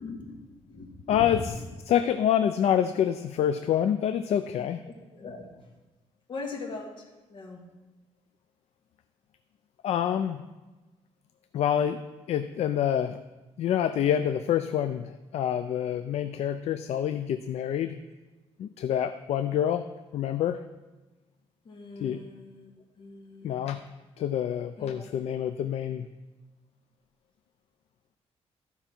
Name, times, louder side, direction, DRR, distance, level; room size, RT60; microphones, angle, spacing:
voice 1, 0.0-1.5 5.1-5.4 6.3-7.6 21.7-22.7 23.0-23.6 24.8-25.0, left 3 dB, 45° left, 0 dB, 1.7 m, -40 dB
voice 2, 1.1-1.5 1.9-4.8 9.8-10.4 11.5-12.0 12.3-13.2 13.6-18.0 18.6-19.8 20.1-20.6 22.0-22.2 23.4-23.8 24.2-26.1, left 9 dB, 65° left, 10 dB, 0.4 m, -27 dB
14.0 x 5.5 x 4.4 m, 1.2 s
cardioid pair, 145°, 12 cm